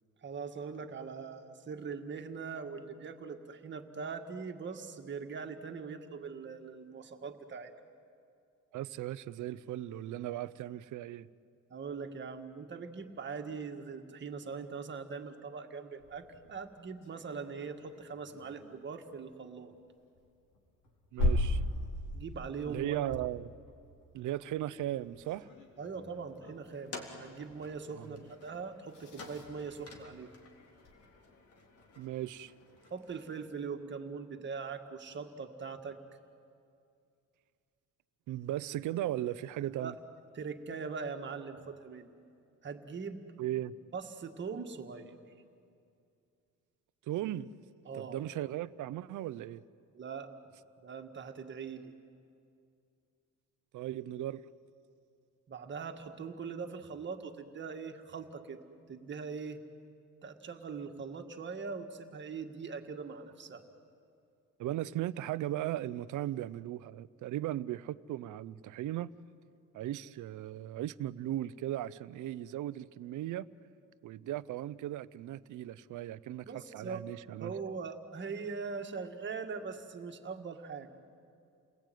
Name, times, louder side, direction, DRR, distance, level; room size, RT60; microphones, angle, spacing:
voice 1, 0.2-7.7 11.7-19.7 22.1-23.1 25.8-30.3 32.9-36.0 39.8-39.9 40.3-42.1 42.6-43.2 43.9-45.1 47.9-48.2 49.9-50.3 50.8-51.9 55.5-58.6 58.9-59.6 60.2-63.6 76.5-77.0 77.4-80.9, right 5 dB, 35° right, 1.9 m, -41 dB
voice 2, 8.7-11.3 21.1-21.6 22.7-23.5 24.1-25.5 28.0-28.1 32.0-32.5 38.3-39.9 43.4-43.7 47.1-47.5 47.9-49.6 53.7-54.5 64.6-69.1 69.7-73.5 74.0-76.5 76.7-77.5, right 13 dB, 70° right, 0.7 m, -37 dB
sound 1, 16.0-31.0 32.4-32.5 32.7-32.8 33.1-33.8, left 1 dB, 80° left, 5.2 m, -40 dB
sound 2, 26.7-33.4, left 3 dB, 50° left, 3.5 m, -52 dB
29.5 x 20.0 x 9.3 m
cardioid pair, 145°, 32 cm